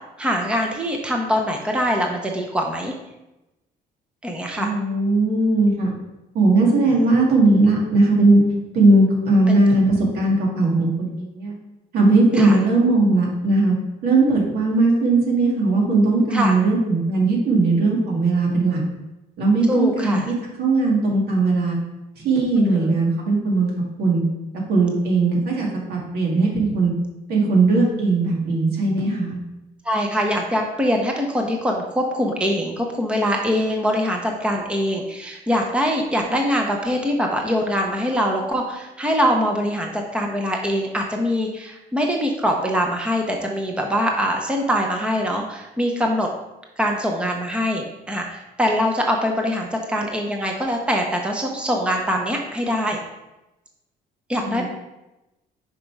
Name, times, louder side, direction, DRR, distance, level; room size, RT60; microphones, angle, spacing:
voice 1, 0.2-2.9 4.2-4.7 6.5-7.0 9.5-9.6 12.3-12.6 16.3-16.5 19.7-20.3 22.5-23.0 29.8-46.3 46.8-53.0 54.3-54.6, equal, 5° right, 1 dB, 0.8 m, -23 dB
voice 2, 4.6-5.9 6.3-8.4 8.7-11.5 11.9-13.7 14.0-18.8 19.4-21.8 22.2-23.7 24.0-24.2 24.7-26.9 27.3-29.4 54.4-54.6, right 2 dB, 70° right, -2 dB, 2.1 m, -18 dB
5.3 x 5.0 x 4.6 m, 0.98 s
cardioid pair, 110°, 17 cm